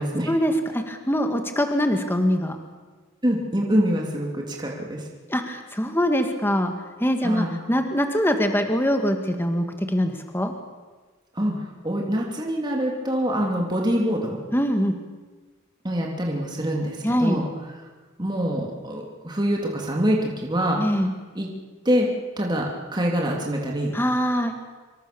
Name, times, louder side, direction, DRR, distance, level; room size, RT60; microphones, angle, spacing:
voice 1, 0.3-2.6 5.3-6.7 7.0-10.5 14.5-15.0 17.0-17.4 20.8-21.1 23.9-24.6, equal, 10° left, 5 dB, 1.8 m, -23 dB
voice 2, 3.2-5.0 7.2-7.6 11.4-11.5 11.8-14.4 15.8-17.5 18.2-21.0 21.3-21.5 21.8-23.9, equal, 20° right, -1 dB, 3.1 m, -25 dB
26.0 x 24.5 x 7.0 m, 1.3 s
head